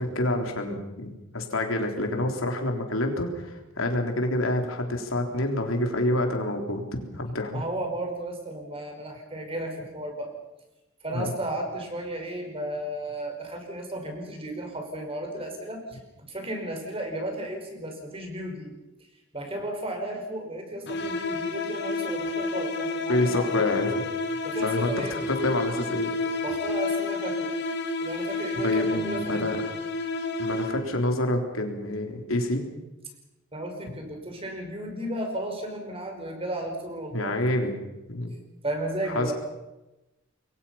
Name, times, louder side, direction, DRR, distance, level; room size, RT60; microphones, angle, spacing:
voice 1, 0.0-7.6 11.1-11.3 23.1-24.1 24.6-26.2 28.6-29.6 30.4-32.6 33.9-34.0 37.1-37.8 38.1-38.3 39.1-39.3, left 1 dB, 90° left, 3 dB, 3.8 m, -27 dB
voice 2, 7.5-10.3 11.0-18.7 19.3-23.6 24.4-25.1 26.4-27.5 28.0-29.6 33.5-37.4 38.6-39.3, right 1 dB, 30° right, 3 dB, 5.5 m, -34 dB
sound 1, 20.9-31.1, left 3 dB, 60° left, 2.3 m, -30 dB
27.0 x 22.5 x 5.8 m, 1.0 s
head